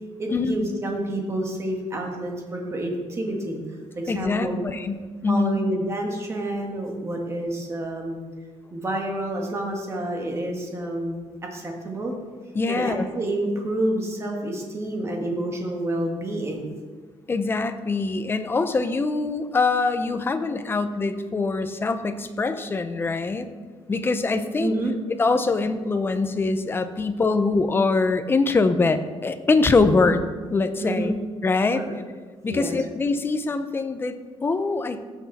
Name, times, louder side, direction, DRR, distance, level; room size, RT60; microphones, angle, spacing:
voice 1, 0.2-3.6 4.0-4.6 5.3-8.2 8.7-12.1 12.7-16.7 24.6-24.9 30.8-31.1 31.7-32.0 32.5-32.8, right 1 dB, 25° right, 1 dB, 1.6 m, -28 dB
voice 2, 4.1-5.6 12.5-13.1 17.3-23.5 23.9-24.7 25.2-30.2 30.5-31.1 31.4-31.8 32.4-35.0, left 3 dB, 20° left, 9 dB, 0.6 m, -23 dB
15.5 x 6.3 x 4.1 m, 1.4 s
cardioid pair, 175°, 11 cm